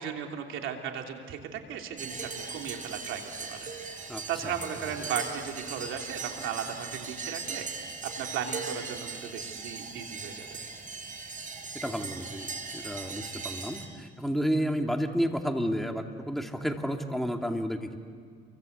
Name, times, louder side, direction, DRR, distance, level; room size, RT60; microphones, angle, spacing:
voice 1, 0.0-3.2 3.5-7.7 8.2-10.5, right 8 dB, 90° right, 3 dB, 3.1 m, -36 dB
sound 1, 2.0-13.9, right 4 dB, 40° right, 4.5 m, -39 dB
voice 2, 4.1-4.5 11.7-18.0, equal, ahead, 3 dB, 2.7 m, -31 dB
29.0 x 24.0 x 8.2 m, 2.1 s
cardioid pair, 90°, 20 cm